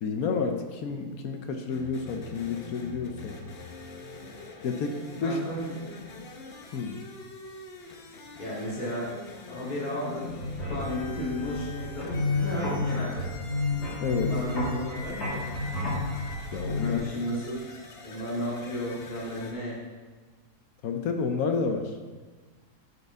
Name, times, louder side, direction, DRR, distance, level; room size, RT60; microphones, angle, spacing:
voice 1, 0.0-3.4 4.6-5.4 6.7-7.0 14.0-14.3 16.5-17.0 20.8-21.9, left 5 dB, 65° left, 5 dB, 1.1 m, -30 dB
sound 1, 1.7-19.5, left 3 dB, 45° left, 1.0 m, -45 dB
voice 2, 5.2-5.8 8.4-9.1 9.5-10.3 10.7-13.1 14.3-15.5 16.8-17.6 18.0-19.8, equal, 25° left, -7 dB, 2.2 m, -33 dB
sound 2, 10.3-16.9, left 2 dB, 85° left, 3.0 m, -31 dB
8.3 x 6.8 x 3.6 m, 1.4 s
omnidirectional pair, 1.7 m